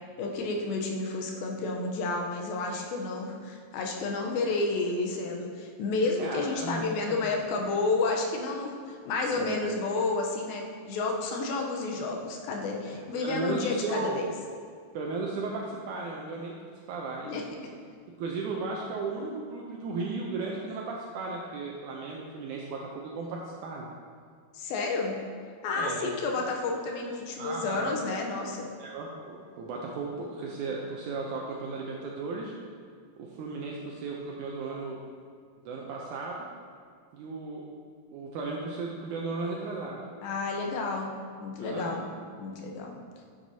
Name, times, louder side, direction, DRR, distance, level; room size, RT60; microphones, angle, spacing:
voice 1, 0.2-14.3 17.2-17.4 24.5-25.2 25.6-28.7 40.2-42.1 42.4-43.0, left 3 dB, 85° left, 1 dB, 2.6 m, -31 dB
voice 2, 6.2-6.8 7.1-7.3 9.4-9.7 12.9-14.2 14.9-16.5 16.9-17.4 18.2-23.9 25.8-26.3 27.4-27.9 28.8-32.5 33.2-35.0 35.7-36.5 37.1-37.6 38.1-40.0 41.6-42.0, right 3 dB, 80° right, -1 dB, 1.8 m, -35 dB
9.0 x 7.6 x 2.7 m, 2.1 s
omnidirectional pair, 4.1 m